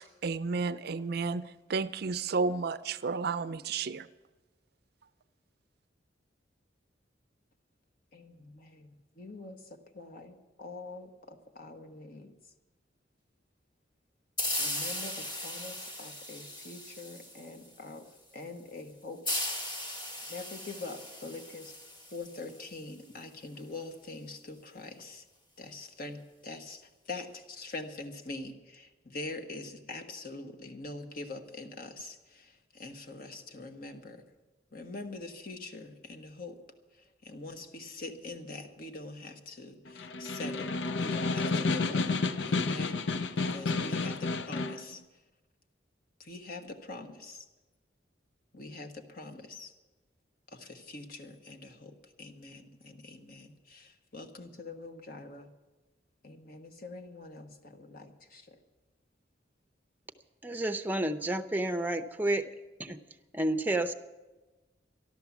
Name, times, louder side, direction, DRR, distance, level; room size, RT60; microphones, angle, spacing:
voice 1, 0.0-4.1, right 4 dB, 60° right, 14 dB, 0.5 m, -32 dB
voice 2, 8.1-12.3 14.6-18.1 18.3-19.4 20.3-21.7 22.1-25.2 25.6-34.2 34.7-36.6 37.0-42.0 42.5-43.0 43.4-45.0 46.2-47.4 48.5-49.7 50.5-55.5 56.2-58.6, left 2 dB, 50° left, 4 dB, 1.3 m, -44 dB
sound 1, 14.4-17.8 19.2-22.7, left 1 dB, 25° left, 2.0 m, -37 dB
Snare drum, 39.9-44.9, left 3 dB, 75° left, 0.6 m, -31 dB
voice 3, 60.4-62.4 62.8-63.0 63.3-63.9, right 1 dB, 10° right, 8 dB, 0.6 m, -30 dB
13.0 x 12.0 x 7.2 m, 1.2 s
head